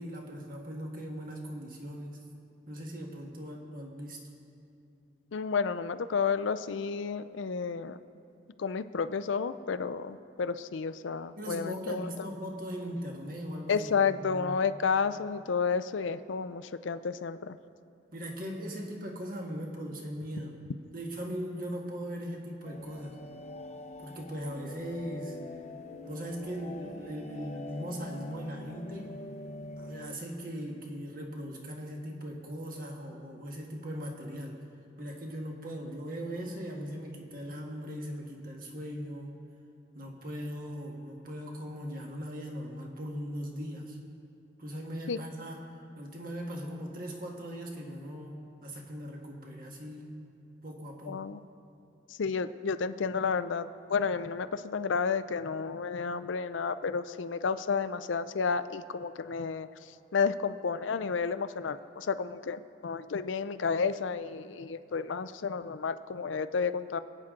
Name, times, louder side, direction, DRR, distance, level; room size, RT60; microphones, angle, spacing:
voice 1, 0.0-2.2 2.7-4.2 11.3-14.5 18.1-20.6 20.9-23.2 24.0-25.4 26.1-29.2 29.8-34.6 35.0-39.3 39.9-44.0 44.6-45.6 45.9-50.3 50.6-51.2, equal, 50° right, 0 dB, 1.6 m, -39 dB
voice 2, 5.3-8.0 8.6-12.1 13.7-17.6 45.1-45.2 51.1-51.4 52.1-67.0, left 5 dB, 85° left, 13 dB, 0.5 m, -31 dB
sound 1, 22.6-30.2, left 2 dB, 35° left, 0.7 m, -45 dB
25.5 x 9.0 x 3.8 m, 2.6 s
head